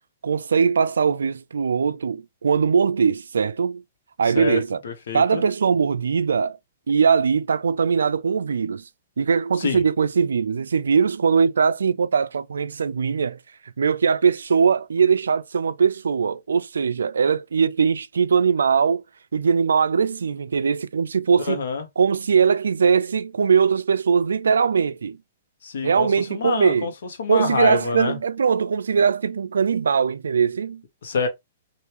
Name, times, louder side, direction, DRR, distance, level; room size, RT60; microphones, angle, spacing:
voice 1, 0.2-3.8 4.2-4.8 5.1-6.6 6.9-8.8 9.2-13.4 13.8-19.0 19.3-21.6 22.0-25.2 25.8-26.9 27.3-30.8, right 6 dB, 85° right, 0.3 m, -21 dB
voice 2, 4.3-5.4 9.6-9.8 21.4-21.8 25.6-26.9 27.2-28.2 31.0-31.3, left 4 dB, 75° left, 1.1 m, -26 dB
2.9 x 2.6 x 3.2 m
hypercardioid pair, 130°, 0 cm